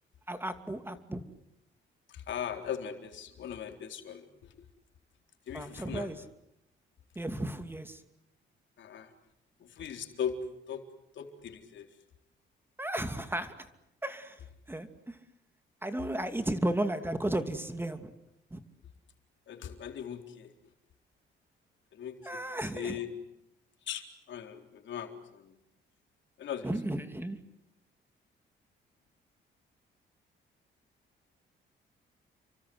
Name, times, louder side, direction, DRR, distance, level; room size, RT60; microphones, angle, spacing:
voice 1, 0.3-1.2 5.5-6.2 7.2-8.0 12.8-13.5 14.0-14.4 14.7-15.2 15.8-18.1 18.5-18.6 22.2-23.0 26.6-27.4, right 1 dB, 10° right, 8 dB, 2.6 m, -34 dB
voice 2, 2.1-4.7 5.5-6.1 8.8-9.1 9.6-10.4 10.7-10.8 11.1-11.9 19.5-20.5 21.9-23.2 23.8-25.6 26.4-26.7, left 8 dB, 70° left, 5 dB, 4.0 m, -39 dB
30.0 x 24.5 x 7.9 m, 0.84 s
cardioid pair, 90°, 20 cm